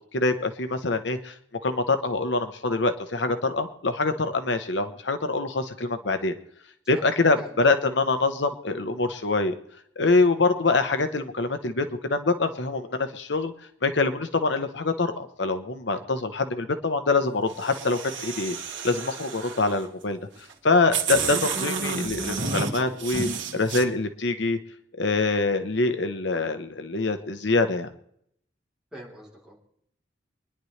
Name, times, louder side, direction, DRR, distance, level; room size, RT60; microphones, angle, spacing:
voice 1, 0.1-1.4 1.6-6.3 6.9-9.5 10.0-13.5 13.8-18.6 18.8-20.2 20.6-24.6 25.0-27.9, left 3 dB, 70° left, 8 dB, 1.0 m, -25 dB
voice 2, 6.9-7.7 15.9-16.0 28.9-29.5, right 1 dB, 5° right, -5 dB, 3.5 m, -46 dB
sound 1, 17.5-19.8 20.5-20.6 20.9-23.8, right 5 dB, 80° right, 1.8 m, -31 dB
24.5 x 10.5 x 3.3 m, 0.69 s
head